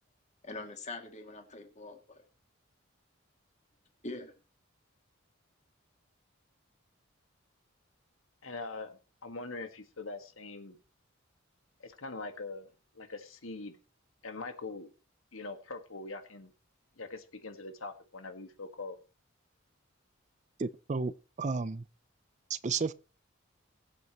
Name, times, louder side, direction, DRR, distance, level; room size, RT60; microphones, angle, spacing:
voice 1, 0.4-2.2 4.0-4.3, left 2 dB, 35° left, 2.5 m, -43 dB
voice 2, 8.4-10.8 11.8-12.7 12.9-13.7 14.2-14.9 15.3-16.5 17.0-19.0, left 3 dB, 75° left, 1.7 m, -42 dB
voice 3, 20.6-21.1 21.4-21.8 22.5-22.9, right 4 dB, 35° right, 0.5 m, -32 dB
22.5 x 8.1 x 3.0 m
head